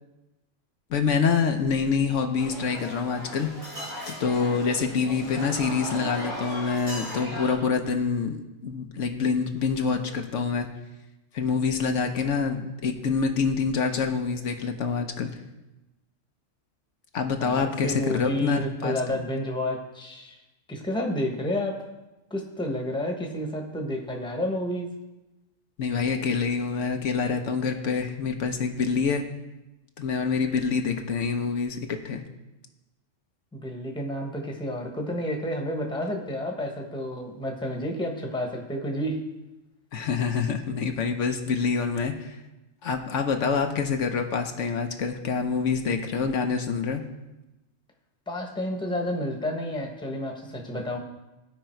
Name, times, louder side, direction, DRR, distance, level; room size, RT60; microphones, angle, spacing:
voice 1, 0.9-3.5 4.1-10.7 11.3-15.3 17.1-19.2 25.8-29.2 30.0-32.2 39.9-42.4 42.8-47.0, left 5 dB, 70° left, 5 dB, 1.1 m, -26 dB
sound 1, 2.4-7.5, equal, 85° right, 4.8 m, -37 dB
voice 2, 17.4-20.4 20.7-21.8 22.3-24.9 33.5-39.2 48.3-51.0, left 1 dB, 5° left, 2 dB, 1.1 m, -30 dB
15.5 x 5.2 x 4.4 m, 1.0 s
omnidirectional pair, 1.4 m